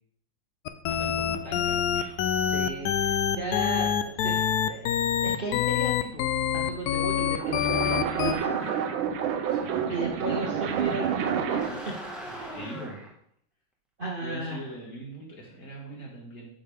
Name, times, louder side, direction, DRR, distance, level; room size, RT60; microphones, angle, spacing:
sound 1, 0.7-8.3, left 9 dB, 70° left, 0.9 m, -26 dB
voice 1, 0.8-2.2 9.5-9.9 12.5-13.0 14.2-16.6, right 1 dB, 50° left, -2 dB, 2.4 m, -41 dB
voice 2, 2.5-6.3 6.5-8.8 9.9-11.9 12.2-12.8 14.0-14.8, right 2 dB, 40° right, -2 dB, 0.9 m, -35 dB
sound 2, 7.0-11.9, right 8 dB, 85° right, 1.5 m, -29 dB
sound 3, 8.3-9.3 11.4-13.1, right 1 dB, ahead, 1.3 m, -41 dB
8.7 x 6.9 x 3.5 m, 0.67 s
omnidirectional pair, 2.1 m